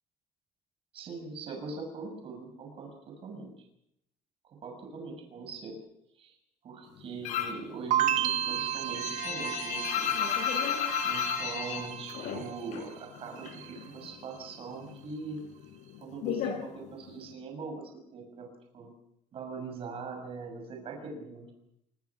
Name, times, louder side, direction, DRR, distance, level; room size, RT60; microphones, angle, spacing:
voice 1, 0.9-3.5 4.4-5.8 6.2-6.4 6.6-10.1 11.0-15.4 16.0-18.9 19.3-21.5, right 4 dB, 50° right, 3 dB, 6.3 m, -42 dB
sound 1, 7.2-7.7 8.0-12.9 13.2-14.2 14.5-17.3, left 9 dB, 75° left, 4.2 m, -33 dB
sound 2, 7.9-12.9 13.2-13.9, right 11 dB, 75° right, 1.4 m, -33 dB
25.5 x 22.0 x 6.0 m, 0.80 s
cardioid pair, 130°, 13 cm